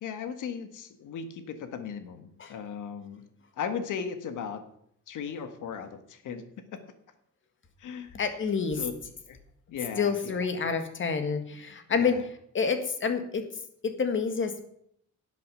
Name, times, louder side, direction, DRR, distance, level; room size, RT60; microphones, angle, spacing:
voice 1, 0.0-3.2 3.5-4.6 5.1-6.4 7.8-8.2 8.8-8.9 9.3-9.4 9.7-10.5 11.9-12.3, left 7 dB, 75° left, 9 dB, 1.7 m, -37 dB
voice 2, 8.1-8.8 10.0-12.2 12.5-13.4 13.8-14.6, left 5 dB, 40° left, 8 dB, 1.9 m, -28 dB
11.5 x 8.4 x 6.8 m, 0.70 s
cardioid pair, 130°, 31 cm